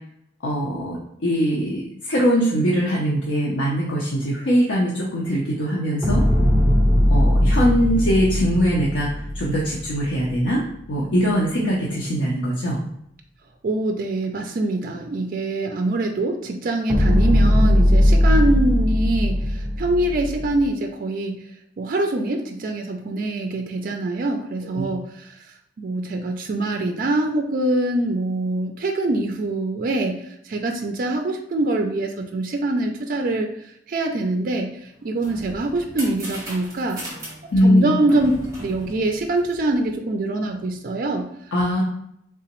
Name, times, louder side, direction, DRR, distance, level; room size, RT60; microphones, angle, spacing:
voice 1, 0.4-6.2 7.1-10.6 10.9-12.8 24.8-24.9 37.5-37.9 41.5-41.8, equal, 80° left, -4 dB, 0.6 m, -21 dB
sound 1, 6.0-10.3 16.9-20.7, equal, ahead, 1.1 m, -19 dB
voice 2, 13.6-21.4 21.8-25.3 25.8-30.2 30.5-33.5 33.9-34.7 35.0-37.0 37.6-38.3 38.6-41.3, right 2 dB, 50° right, 4 dB, 0.4 m, -24 dB
sound 2, 34.9-39.9, right 1 dB, 15° right, 1.2 m, -37 dB
3.4 x 2.9 x 3.0 m, 0.75 s
head